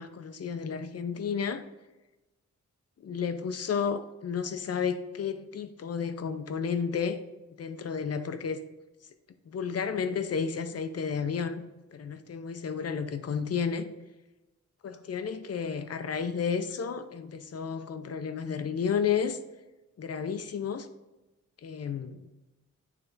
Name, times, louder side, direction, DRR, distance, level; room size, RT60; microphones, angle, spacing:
voice 1, 0.0-1.6 3.0-7.2 7.6-8.6 9.5-11.6 11.9-13.9 14.8-19.4 20.0-20.9 21.6-22.3, left 6 dB, 55° left, 0.6 m, -32 dB
9.1 x 3.3 x 4.0 m
wide cardioid pair, 100°, 30 cm